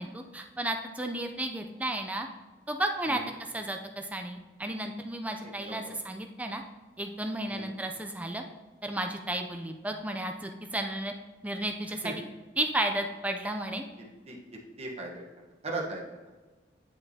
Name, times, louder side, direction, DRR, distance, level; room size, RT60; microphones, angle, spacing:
voice 1, 0.0-2.3 2.7-6.6 7.0-8.4 8.8-11.1 11.4-12.2 12.6-13.9, right 1 dB, 10° right, 4 dB, 0.4 m, -33 dB
voice 2, 14.8-15.2 15.6-16.3, right 2 dB, 35° right, -1 dB, 1.1 m, -37 dB
9.2 x 5.5 x 2.8 m, 1.2 s
head